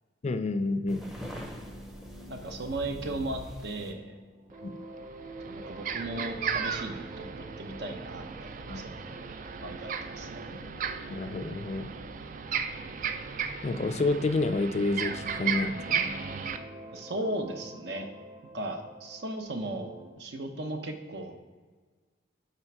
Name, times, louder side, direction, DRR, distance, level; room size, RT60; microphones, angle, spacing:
voice 1, 0.2-1.1 4.6-4.8 8.7-9.0 11.1-11.9 13.6-16.0, left 2 dB, 35° left, 10 dB, 0.3 m, -29 dB
sound 1, 0.9-3.9, equal, ahead, 0.6 m, -43 dB
sound 2, 1.2-14.5 15.0-20.1, right 2 dB, 25° right, 0.9 m, -48 dB
voice 2, 2.3-4.1 5.5-9.0 9.6-10.4 16.9-18.1 18.5-21.3, right 1 dB, 60° right, 5 dB, 0.8 m, -36 dB
sound 3, 4.5-4.6 5.0-16.6, right 6 dB, 45° right, 0.3 m, -35 dB
9.0 x 3.4 x 4.6 m, 1.4 s
head